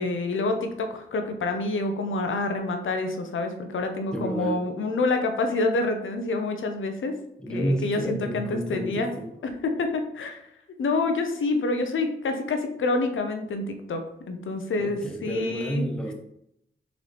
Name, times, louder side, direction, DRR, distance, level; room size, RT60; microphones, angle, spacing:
voice 1, 0.0-7.1 7.5-9.1 9.6-10.5 10.8-14.0 14.3-15.9, left 3 dB, 75° left, 6 dB, 0.6 m, -27 dB
voice 2, 4.1-4.6 7.4-9.3 14.8-16.1, right 1 dB, 5° left, 2 dB, 0.7 m, -30 dB
3.8 x 3.0 x 3.3 m, 0.78 s
cardioid pair, 40°, 20 cm